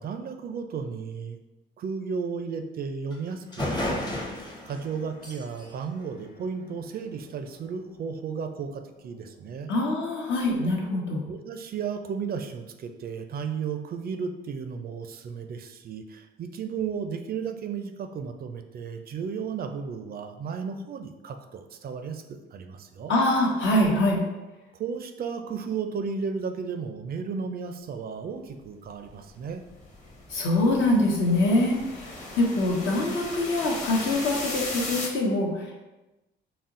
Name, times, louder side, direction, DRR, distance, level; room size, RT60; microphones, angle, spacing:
voice 1, 0.0-1.4 1.8-9.7 11.3-23.1 24.7-29.6, right 6 dB, 50° right, 7 dB, 0.4 m, -34 dB
sound 1, 3.1-3.2 3.5-7.0, left 1 dB, 20° left, 0.7 m, -34 dB
voice 2, 9.7-11.2 23.1-24.2 30.3-35.8, left 1 dB, 70° left, -1 dB, 0.9 m, -24 dB
sound 2, 29.1-35.1, left 2 dB, 35° left, 1.0 m, -37 dB
4.1 x 2.0 x 3.7 m, 1.1 s
cardioid pair, 90°, 20 cm